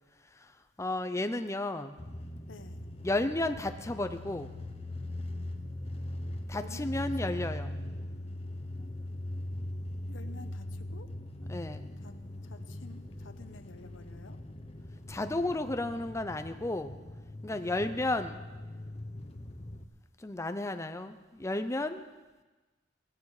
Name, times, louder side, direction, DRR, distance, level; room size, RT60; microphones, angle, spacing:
voice 1, 0.8-1.9 3.0-4.5 6.5-7.8 8.8-8.9 11.5-11.9 15.1-16.9 17.4-18.4 20.2-22.0, left 2 dB, 15° left, 8 dB, 0.6 m, -33 dB
sound 1, 2.0-19.8, left 1 dB, 30° left, 1.0 m, -41 dB
voice 2, 2.5-2.8 6.5-7.1 10.1-11.1 12.0-12.1 12.4-14.4 15.8-15.9 17.6-17.8, left 3 dB, 85° left, 10 dB, 1.1 m, -51 dB
17.5 x 16.5 x 4.9 m, 1.2 s
head